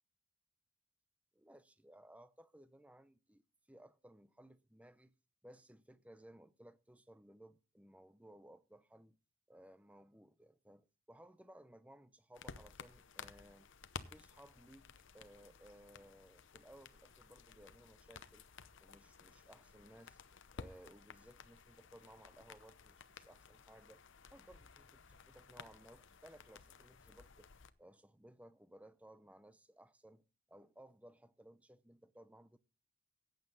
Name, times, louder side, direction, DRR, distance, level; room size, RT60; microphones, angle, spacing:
voice 1, 1.3-3.4 3.7-5.1 5.4-9.2 9.5-13.7 14.1-14.9 15.1-18.4 18.8-20.2 20.5-24.0 24.3-27.5 27.8-32.6, right 1 dB, 5° right, 0.6 m, -60 dB
sound 1, 12.3-27.7, left 5 dB, 55° left, 0.8 m, -55 dB
14.5 x 9.0 x 4.0 m
head